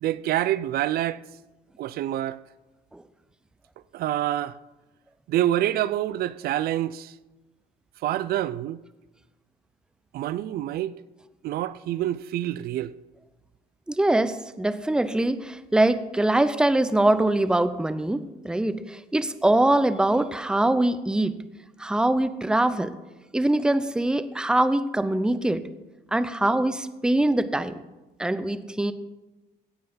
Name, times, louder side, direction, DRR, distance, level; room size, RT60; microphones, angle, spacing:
voice 1, 0.0-1.2 1.8-2.4 3.9-4.6 5.3-7.1 8.0-8.8 10.1-10.9 11.4-12.9, right 13 dB, 65° right, 0.4 m, -26 dB
voice 2, 13.9-21.4 21.8-22.9 23.3-25.6 26.1-27.8 28.2-28.9, right 1 dB, 5° right, 0.6 m, -23 dB
16.5 x 5.6 x 5.6 m
cardioid pair, 110°, 17 cm